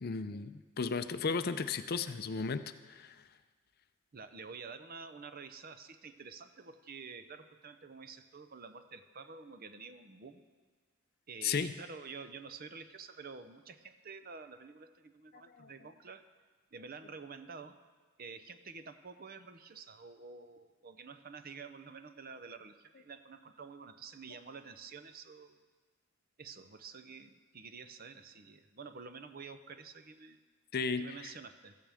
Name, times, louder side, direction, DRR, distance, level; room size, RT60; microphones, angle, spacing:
voice 1, 0.0-3.2 11.4-11.7 15.6-15.7 30.7-31.1, left 5 dB, 45° left, 11 dB, 0.5 m, -34 dB
voice 2, 4.1-10.4 11.3-16.3 16.7-17.8 18.2-25.6 26.4-30.4 31.0-31.8, right 5 dB, 45° right, 10 dB, 0.6 m, -49 dB
16.0 x 14.0 x 3.5 m, 1.4 s
head